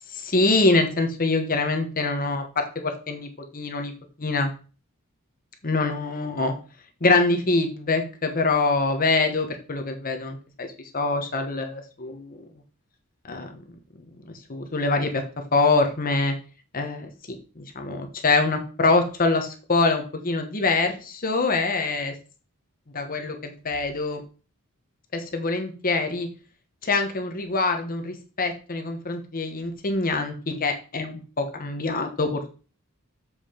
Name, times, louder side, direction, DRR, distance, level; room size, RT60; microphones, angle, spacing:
voice 1, 0.1-3.3 3.5-3.9 4.2-4.5 5.6-6.5 7.0-10.7 10.9-12.4 13.2-13.6 14.3-15.2 15.5-16.3 16.7-22.1 22.9-24.2 25.1-26.3 26.8-32.5, left 3 dB, 40° left, 5 dB, 1.1 m, -24 dB
7.4 x 5.0 x 5.1 m, 0.36 s
head